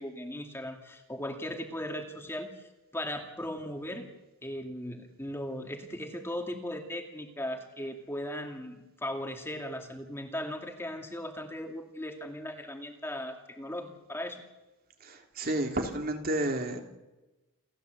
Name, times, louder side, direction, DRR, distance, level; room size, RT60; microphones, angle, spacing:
voice 1, 0.0-2.6 2.9-4.1 4.4-14.4, left 1 dB, 10° left, 4 dB, 2.2 m, -38 dB
voice 2, 15.0-16.8, right 1 dB, 45° right, 4 dB, 3.0 m, -31 dB
29.0 x 14.0 x 8.2 m, 1.1 s
head